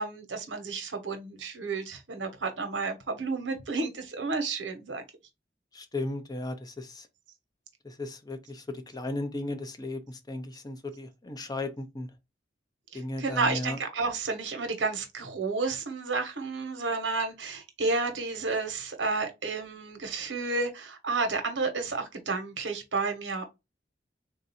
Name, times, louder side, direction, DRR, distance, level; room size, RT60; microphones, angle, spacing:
voice 1, 0.0-5.0 12.9-23.4, right 3 dB, 80° right, 1.1 m, -31 dB
voice 2, 5.7-7.1 7.8-8.6 8.9-12.1 12.9-13.8, left 2 dB, 20° left, 0.5 m, -35 dB
3.7 x 2.6 x 4.1 m
head